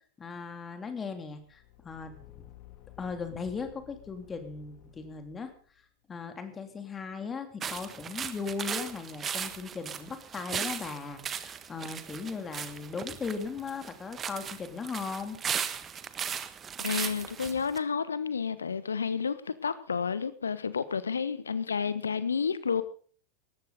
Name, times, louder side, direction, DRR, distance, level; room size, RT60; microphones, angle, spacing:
voice 1, 0.2-2.4 3.0-5.5 6.1-15.4, left 5 dB, 20° left, 3.1 m, -38 dB
Car / Engine, 1.3-5.8, left 15 dB, 40° left, 3.0 m, -54 dB
sound 1, 7.6-17.8, right 7 dB, 25° right, 1.3 m, -37 dB
voice 2, 16.8-22.8, left 6 dB, 70° left, 1.3 m, -30 dB
18.5 x 14.5 x 4.1 m
figure-of-eight pair, 90°, 0 cm